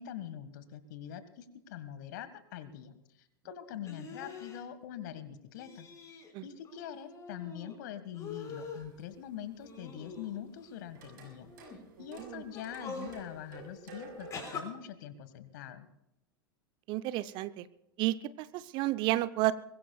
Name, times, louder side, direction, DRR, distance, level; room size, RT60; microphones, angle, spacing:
voice 1, 0.0-11.5 12.0-15.9, left 10 dB, 55° left, 12 dB, 1.8 m, -44 dB
sound 1, 3.8-4.6 5.6-6.3 6.6-7.7 8.1-8.9 9.6-10.7 11.4-11.8 12.5-13.2 14.3-14.6, left 4 dB, 25° left, 5.3 m, -44 dB
sound 2, 8.2-14.5, right 3 dB, 60° right, 6.7 m, -52 dB
voice 2, 12.0-12.4 16.9-17.7 18.0-19.5, right 16 dB, 40° right, 14 dB, 0.7 m, -32 dB
24.0 x 21.5 x 2.4 m, 0.86 s
figure-of-eight pair, 90°, 12 cm